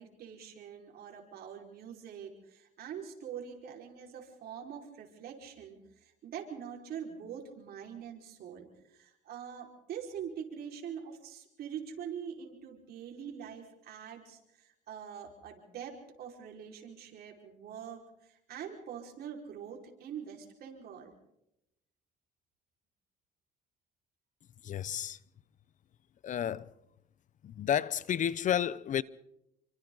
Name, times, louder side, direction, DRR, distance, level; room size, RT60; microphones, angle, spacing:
voice 1, 0.0-21.1, right 8 dB, 65° right, 5.3 m, -44 dB
voice 2, 24.6-25.2 26.2-26.7 27.4-29.0, left 9 dB, 50° left, 0.7 m, -31 dB
28.5 x 24.5 x 4.1 m
cardioid pair, 110°, 17 cm